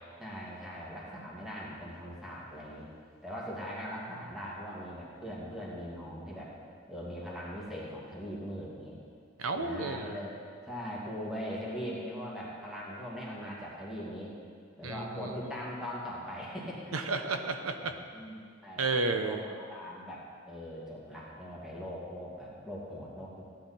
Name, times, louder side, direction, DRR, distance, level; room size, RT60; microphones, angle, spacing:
voice 1, 0.2-2.9 3.2-6.5 6.9-9.0 9.5-10.3 10.6-14.4 14.8-16.9 17.8-18.9 19.2-23.4, equal, ahead, -6 dB, 2.3 m, -41 dB
voice 2, 9.4-10.2 14.8-15.5 16.9-17.9 18.8-19.4, right 3 dB, 85° right, 7 dB, 0.9 m, -32 dB
15.0 x 10.0 x 4.3 m, 2.1 s
head